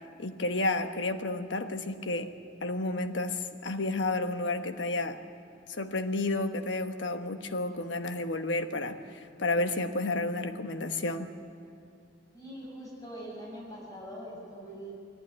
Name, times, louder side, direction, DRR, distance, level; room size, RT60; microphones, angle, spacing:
voice 1, 0.2-2.3 2.6-5.2 5.7-11.3, left 2 dB, 85° left, 8 dB, 1.2 m, -31 dB
voice 2, 12.3-14.9, equal, 20° left, -4 dB, 6.1 m, -43 dB
21.0 x 15.0 x 9.6 m, 2.6 s
head